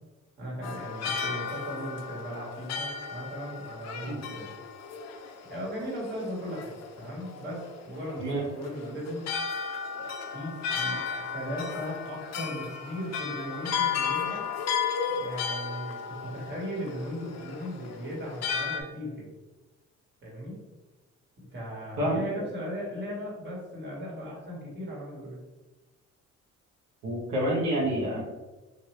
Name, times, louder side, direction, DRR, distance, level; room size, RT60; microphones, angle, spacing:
voice 1, 0.4-4.5 5.5-9.2 10.2-14.4 15.2-19.2 20.2-20.6 21.5-25.4, equal, 35° right, -4 dB, 1.4 m, -37 dB
sound 1, 0.6-18.8, left 6 dB, 60° left, 0.5 m, -34 dB
voice 2, 27.0-28.2, right 1 dB, 80° right, -5 dB, 0.9 m, -28 dB
3.0 x 2.5 x 3.0 m, 1.1 s
cardioid pair, 90°, 30 cm